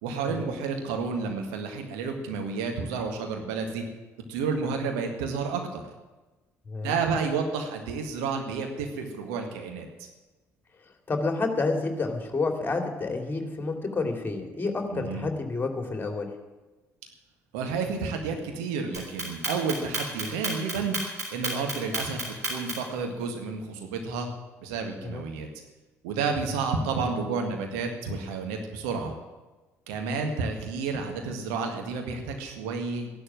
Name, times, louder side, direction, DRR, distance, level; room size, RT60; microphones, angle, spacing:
voice 1, 0.0-3.8 4.3-5.9 6.8-9.9 14.9-15.3 17.5-21.0 21.3-24.3 24.6-25.5 26.0-29.1 29.9-33.1, right 5 dB, 65° right, 4 dB, 1.9 m, -30 dB
voice 2, 6.7-7.0 11.1-16.3 25.0-25.2 26.4-26.6 30.1-30.2, left 3 dB, 25° left, 4 dB, 2.8 m, -29 dB
Clock, 18.9-23.0, right 2 dB, 85° right, 3.6 m, -31 dB
14.5 x 11.5 x 7.5 m, 1.2 s
figure-of-eight pair, 50°, 8 cm